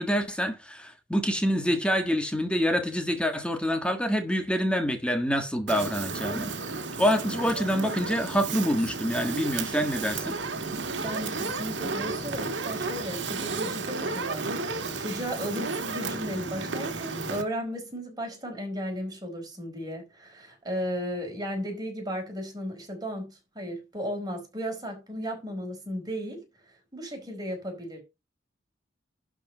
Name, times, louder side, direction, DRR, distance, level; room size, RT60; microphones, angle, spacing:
voice 1, 0.0-6.5 7.0-10.4, equal, 5° left, 1.5 m, -26 dB
Fire, 5.7-17.4, right 3 dB, 70° right, 1.6 m, -33 dB
voice 2, 11.0-26.4 26.9-28.0, equal, 20° right, 4.7 m, -35 dB
11.5 x 5.1 x 5.6 m
head